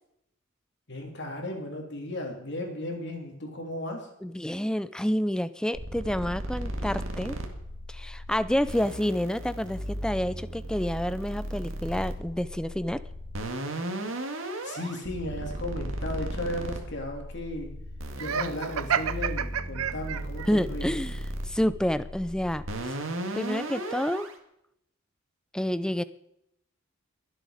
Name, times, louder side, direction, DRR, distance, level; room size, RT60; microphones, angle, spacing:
voice 1, 0.9-4.1 14.6-17.7 18.2-20.9, left 1 dB, 55° left, 2 dB, 3.0 m, -35 dB
voice 2, 4.2-7.4 7.9-13.0 20.5-21.2 21.5-22.7 23.3-24.3 25.5-26.0, equal, 5° left, 15 dB, 0.4 m, -28 dB
sound 1, 5.7-24.3, right 1 dB, 65° right, 1.9 m, -36 dB
Laughter, 18.2-20.5, right 8 dB, 85° right, 0.6 m, -30 dB
22.0 x 7.7 x 4.9 m, 0.79 s
head